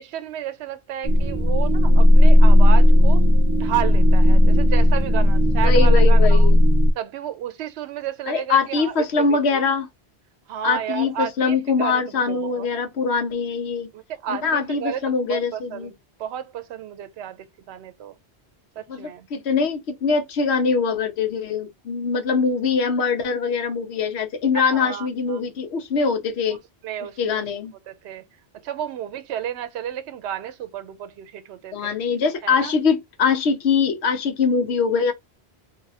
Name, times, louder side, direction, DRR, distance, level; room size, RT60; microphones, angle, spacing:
voice 1, 0.0-3.2 3.6-6.5 7.0-9.6 10.5-12.7 13.9-15.0 15.3-15.9 16.2-18.2 18.8-19.3 24.5-25.4 26.8-27.5 27.9-28.2 28.6-31.9 32.4-32.7, right 10 dB, 80° right, 0.8 m, -32 dB
sound 1, 1.0-6.9, left 1 dB, 30° right, 0.6 m, -14 dB
voice 2, 5.6-6.6 8.3-9.9 10.6-13.9 14.3-15.9 18.9-26.6 27.2-27.7 31.7-35.1, left 5 dB, 75° left, 1.1 m, -23 dB
2.7 x 2.4 x 4.0 m
omnidirectional pair, 1.1 m